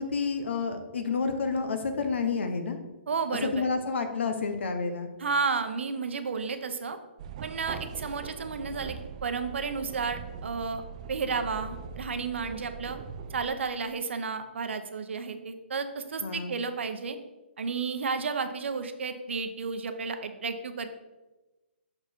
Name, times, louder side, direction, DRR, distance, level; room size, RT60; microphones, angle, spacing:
voice 1, 0.0-2.8 3.5-5.1 16.2-16.5, left 4 dB, 70° left, 8 dB, 1.0 m, -29 dB
voice 2, 3.1-3.7 5.2-7.0 7.4-10.8 11.1-13.0 13.3-17.2 17.6-21.0, right 5 dB, 75° right, 9 dB, 0.8 m, -32 dB
sound 1, 7.2-13.5, right 6 dB, 35° right, 0.4 m, -41 dB
6.5 x 4.4 x 4.4 m, 1.1 s
hypercardioid pair, 160°, 6 cm